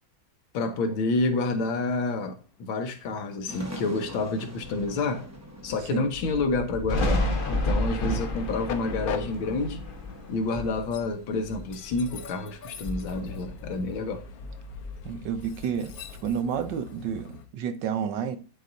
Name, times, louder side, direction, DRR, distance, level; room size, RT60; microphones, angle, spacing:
voice 1, 0.5-5.3 5.6-9.8 10.3-14.2, left 3 dB, 85° left, 1.8 m, -29 dB
Train, 0.7-17.5, left 7 dB, 60° left, 1.0 m, -44 dB
sound 1, 3.5-11.1, equal, 15° right, 0.6 m, -41 dB
Thunder, 6.9-12.3 12.7-14.1 14.4-16.1, left 1 dB, 40° left, 0.7 m, -31 dB
voice 2, 15.0-15.9 16.2-18.4, right 8 dB, 70° right, 1.3 m, -30 dB
11.0 x 4.1 x 2.6 m
omnidirectional pair, 2.2 m